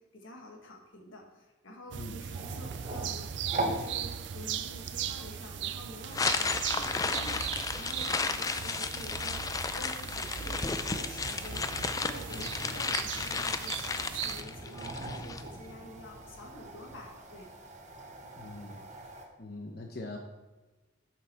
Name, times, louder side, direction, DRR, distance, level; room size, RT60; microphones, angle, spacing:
voice 1, 0.0-7.4 7.8-9.4 9.7-17.5, left 1 dB, 90° left, 1 dB, 1.7 m, -48 dB
sound 1, 1.9-14.4, right 9 dB, 65° right, 0.4 m, -38 dB
sound 2, 2.3-19.2, right 2 dB, 35° right, 0.9 m, -43 dB
sound 3, 6.1-15.4, left 4 dB, 20° left, 0.3 m, -33 dB
voice 2, 18.4-18.8 19.4-20.2, left 2 dB, 55° left, 2 dB, 0.8 m, -42 dB
8.0 x 6.0 x 4.4 m, 1.2 s
head